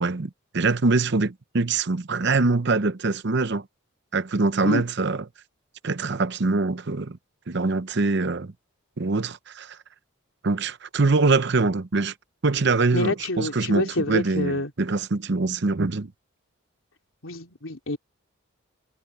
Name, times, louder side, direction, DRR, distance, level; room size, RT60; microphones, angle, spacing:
voice 1, 0.0-3.7 4.1-5.2 5.8-7.2 7.5-8.5 9.0-9.8 10.4-12.1 12.4-16.1, right 3 dB, 55° right, 0.8 m, -24 dB
voice 2, 12.9-14.7 17.2-18.0, left 2 dB, 80° left, 3.4 m, -27 dB
head